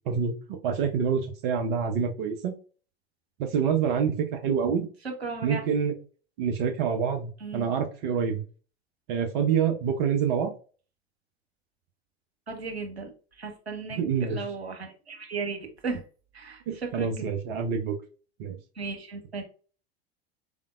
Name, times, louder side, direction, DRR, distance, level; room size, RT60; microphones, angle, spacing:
voice 1, 0.1-2.5 3.4-4.9 5.4-5.9 6.4-8.4 9.1-10.5 14.0-14.4 16.7-17.9 18.4-18.6, right 7 dB, 50° right, 4 dB, 0.8 m, -27 dB
voice 2, 5.0-5.6 7.4-7.6 12.5-16.0 16.3-17.3 18.7-19.4, right 4 dB, 80° right, 3 dB, 1.1 m, -36 dB
4.3 x 3.6 x 2.4 m, 0.37 s
figure-of-eight pair, 80°, 31 cm